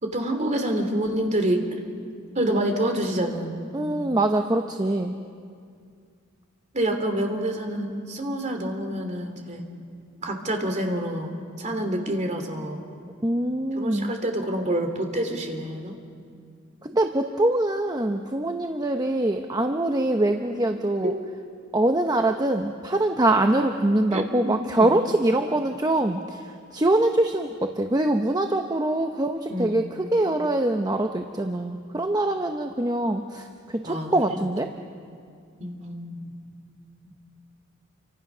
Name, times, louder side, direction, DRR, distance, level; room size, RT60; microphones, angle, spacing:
voice 1, 0.0-1.7 2.3-3.5 6.7-9.7 10.2-12.8 13.7-16.0 21.0-21.2 24.1-24.9 29.5-29.8 33.8-34.4 35.6-36.3, right 1 dB, 35° right, 4 dB, 2.9 m, -27 dB
voice 2, 3.7-5.1 13.2-14.1 16.8-21.1 21.7-26.5 26.7-34.7, right 1 dB, 20° right, 5 dB, 0.9 m, -24 dB
29.0 x 25.0 x 6.2 m, 2.2 s
head